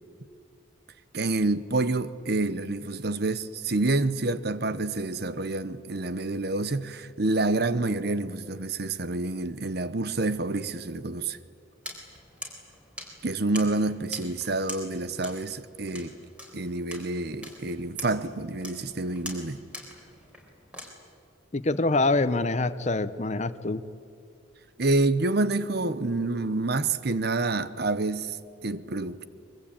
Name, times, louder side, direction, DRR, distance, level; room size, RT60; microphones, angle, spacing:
voice 1, 1.1-11.4 13.2-16.1 16.5-19.6 24.8-28.4 28.6-29.2, right 2 dB, 50° right, 0.9 m, -28 dB
sound 1, 11.8-20.9, left 1 dB, 5° right, 4.0 m, -44 dB
voice 2, 21.5-23.8, left 2 dB, 35° left, 0.8 m, -25 dB
24.5 x 23.0 x 8.8 m
head